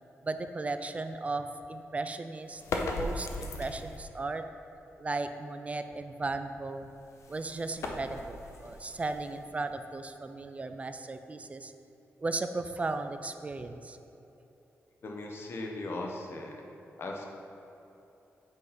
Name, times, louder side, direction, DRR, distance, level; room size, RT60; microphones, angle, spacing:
voice 1, 0.2-4.4 5.0-6.9 7.3-11.7 12.2-14.0, right 3 dB, 30° right, 8 dB, 0.4 m, -36 dB
sound 1, 2.5-4.1 6.8-9.8, left 2 dB, 80° left, 0.7 m, -38 dB
voice 2, 15.0-16.6 17.0-17.2, left 2 dB, 55° left, 0 dB, 1.0 m, -38 dB
8.4 x 4.2 x 5.1 m, 3.0 s
wide cardioid pair, 105°, 5 cm